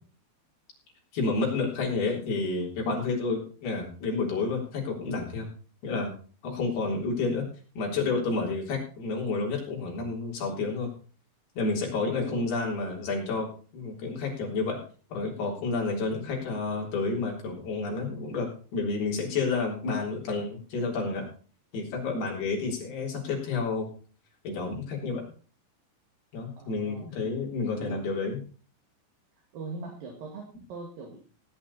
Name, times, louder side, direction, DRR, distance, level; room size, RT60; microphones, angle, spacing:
voice 1, 1.1-5.5 5.8-6.1 6.4-7.4 7.8-10.9 11.6-14.8 15.1-21.3 21.7-23.9 24.4-25.2 26.3-28.4, left 3 dB, 70° left, -1 dB, 5.7 m, -30 dB
voice 2, 12.1-12.5 26.6-27.1 27.7-28.1 29.5-31.2, right 4 dB, 60° right, 1 dB, 3.6 m, -41 dB
17.5 x 9.2 x 4.2 m, 0.39 s
omnidirectional pair, 4.7 m